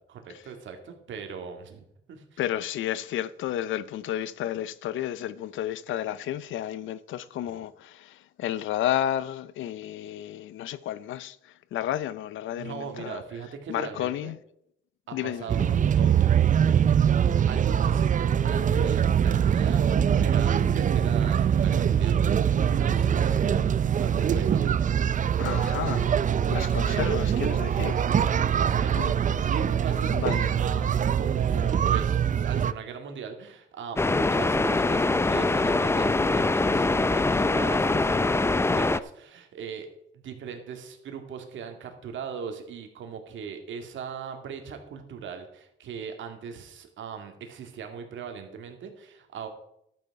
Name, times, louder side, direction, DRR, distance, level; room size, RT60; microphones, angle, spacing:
voice 1, 0.1-1.8 2.1-2.4 7.5-7.6 12.6-14.3 15.1-16.3 17.5-24.8 26.4-27.1 28.5-29.1 29.4-39.9 40.2-49.5, right 6 dB, 75° right, 2.3 m, -39 dB
voice 2, 2.4-11.4 11.7-13.2 13.7-14.4 15.1-15.5 25.4-28.0 29.0-29.1 30.1-30.5, left 12 dB, 80° left, 0.7 m, -32 dB
sound 1, 15.5-32.7, right 8 dB, 40° right, 0.5 m, -23 dB
sound 2, 34.0-39.0, left 2 dB, 15° left, 0.5 m, -23 dB
12.0 x 8.8 x 4.8 m
cardioid pair, 90°, 20 cm